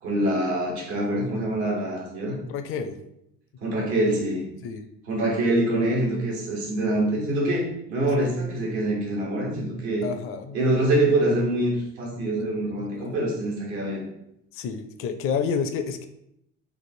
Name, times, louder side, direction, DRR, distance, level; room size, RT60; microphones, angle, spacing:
voice 1, 0.0-2.3 3.6-4.4 5.1-7.6 7.9-10.0 10.5-14.0, right 1 dB, 90° right, -3 dB, 1.4 m, -25 dB
voice 2, 2.4-3.0 4.6-4.8 8.2-8.3 10.0-10.6 12.4-12.5 12.8-13.1 14.5-16.1, left 6 dB, 45° left, 8 dB, 0.5 m, -30 dB
3.3 x 2.5 x 4.2 m, 0.79 s
supercardioid pair, 80°, 31 cm